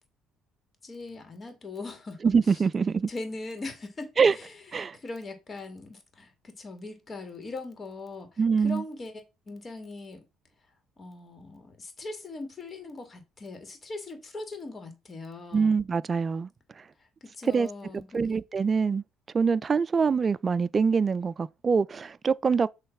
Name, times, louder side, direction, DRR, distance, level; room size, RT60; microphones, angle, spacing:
voice 1, 0.8-2.2 2.5-2.6 3.1-4.6 4.9-10.2 11.0-15.8 17.0-18.4, left 3 dB, 30° left, 2.3 m, -40 dB
voice 2, 2.2-3.1 4.2-4.3 4.7-5.0 8.4-8.8 15.5-16.5 17.5-17.7 18.1-19.0 19.3-22.7, right 5 dB, 35° right, 0.4 m, -24 dB
6.7 x 3.2 x 5.9 m
supercardioid pair, 90°, 0 cm